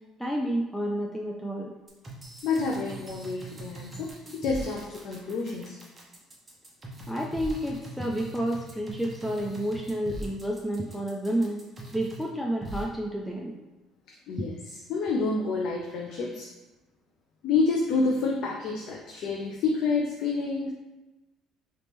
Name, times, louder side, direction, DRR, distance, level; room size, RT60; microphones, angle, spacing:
voice 1, 0.2-1.7 7.1-11.6 11.9-13.5, right 1 dB, ahead, -2 dB, 0.3 m, -30 dB
sound 1, 1.9-12.3 12.6-12.8, right 1 dB, 20° right, 0.7 m, -41 dB
voice 2, 2.4-4.1 4.4-5.8 14.3-14.5 14.9-16.5 17.4-20.7, left 4 dB, 65° left, -1 dB, 0.4 m, -28 dB
3.0 x 2.9 x 3.4 m, 1.1 s
cardioid pair, 125°, 0 cm